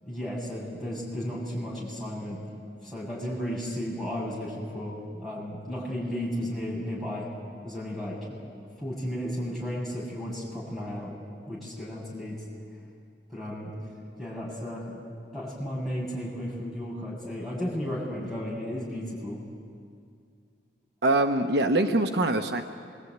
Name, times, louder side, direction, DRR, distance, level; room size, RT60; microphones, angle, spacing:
voice 1, 0.0-2.4 2.8-7.3 7.6-8.4 8.8-11.2 11.5-12.4 13.3-13.9 14.2-15.0 15.3-19.4, equal, ahead, -6 dB, 7.9 m, -34 dB
voice 2, 21.0-22.6, right 2 dB, 65° right, 5 dB, 1.2 m, -23 dB
26.5 x 23.0 x 9.5 m, 2.3 s
head